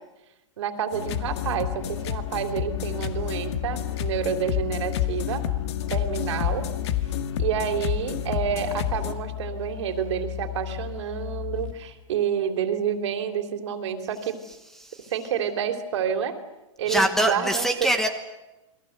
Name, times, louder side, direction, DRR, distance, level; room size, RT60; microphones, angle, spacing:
voice 1, 0.6-5.4 5.9-6.6 7.4-14.4 15.1-16.3 16.8-17.9, right 8 dB, 60° right, 6 dB, 3.4 m, -29 dB
sound 1, 0.9-9.1, left 10 dB, 55° left, 1.9 m, -30 dB
sound 2, 1.1-11.7, left 18 dB, 75° left, 4.4 m, -35 dB
voice 2, 14.8-15.1 16.8-18.1, right 1 dB, ahead, 7 dB, 1.3 m, -24 dB
29.0 x 22.0 x 8.1 m, 1.0 s
hypercardioid pair, 165°, 17 cm